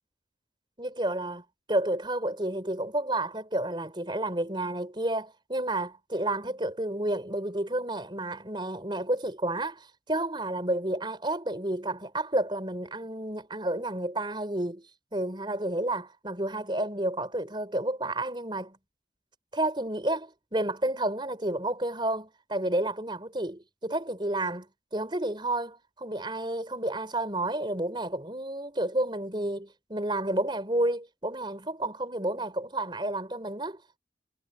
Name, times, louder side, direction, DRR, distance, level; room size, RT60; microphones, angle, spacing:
voice 1, 0.8-14.9 15.1-18.8 19.5-34.0, right 1 dB, 25° right, 4.8 m, -31 dB
head